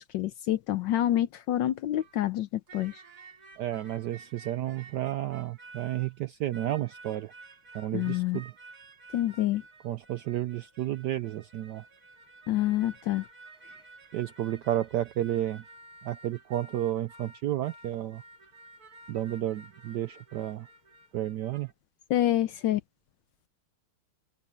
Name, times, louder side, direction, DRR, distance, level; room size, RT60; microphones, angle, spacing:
voice 1, 0.0-3.0 7.9-8.4 9.1-9.6 12.5-13.2 22.1-22.8, left 13 dB, 70° left, 1.1 m, -27 dB
sound 1, 2.0-2.2 2.7-6.2 6.5-21.7, right 3 dB, 45° right, 2.4 m, -52 dB
voice 2, 3.6-7.3 7.7-8.5 9.8-11.9 14.1-15.6 16.0-18.2 19.1-20.7 21.1-21.7, right 13 dB, 75° right, 0.9 m, -32 dB
omnidirectional pair, 2.4 m